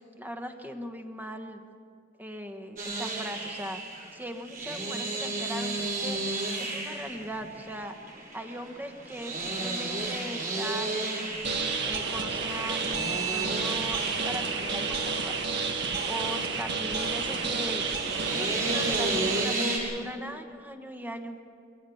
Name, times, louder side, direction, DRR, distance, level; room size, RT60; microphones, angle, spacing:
voice 1, 0.0-1.6 2.2-3.8 4.1-6.2 6.6-7.9 8.3-11.4 11.8-15.3 16.1-17.8 18.3-21.4, right 1 dB, 10° right, 6 dB, 1.3 m, -39 dB
sound 1, 2.8-19.8, right 2 dB, 45° right, 6.7 m, -34 dB
sound 2, 11.4-19.4, right 4 dB, 65° right, 1.7 m, -30 dB
23.0 x 18.0 x 7.2 m, 2.2 s
head